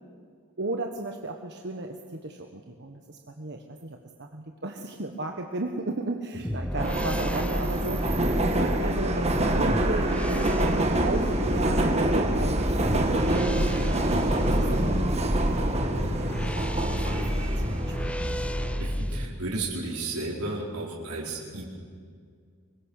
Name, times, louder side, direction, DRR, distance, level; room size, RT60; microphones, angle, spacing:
voice 1, 0.6-8.0 8.5-12.6 13.3-15.2 15.5-16.3 16.7-18.2, right 2 dB, 50° right, 3 dB, 1.3 m, -35 dB
sound 1, 6.4-19.3, equal, 5° left, 0.6 m, -32 dB
Subway metro underground, 6.8-18.8, right 1 dB, 30° right, 1.8 m, -26 dB
voice 2, 18.8-21.7, right 2 dB, 85° right, -3 dB, 4.8 m, -33 dB
25.0 x 22.0 x 6.6 m, 2.1 s
head